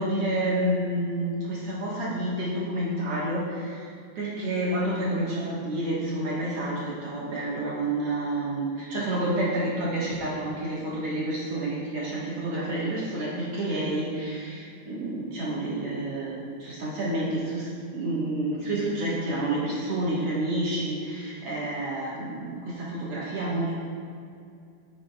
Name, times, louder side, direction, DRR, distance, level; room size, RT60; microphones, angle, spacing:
voice 1, 0.0-23.8, right 1 dB, 85° right, -7 dB, 1.3 m, -29 dB
13.5 x 8.9 x 2.3 m, 2.5 s
omnidirectional pair, 4.8 m